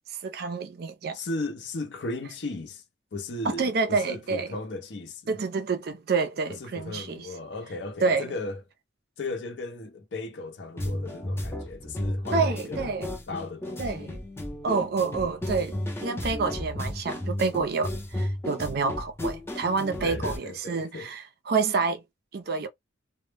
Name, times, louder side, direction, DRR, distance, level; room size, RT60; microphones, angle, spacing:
voice 1, 0.2-1.2 3.4-4.5 5.3-7.3 8.0-8.3 12.3-13.2 13.8-14.2 14.6-22.0 22.3-22.7, right 4 dB, 55° right, 0.4 m, -28 dB
voice 2, 1.1-2.8 3.1-5.4 6.5-8.6 9.2-12.9 13.3-14.2 20.0-21.1, left 2 dB, 65° left, 0.6 m, -36 dB
sound 1, 10.8-20.4, left 1 dB, 15° left, 0.5 m, -33 dB
2.0 x 2.0 x 3.2 m
head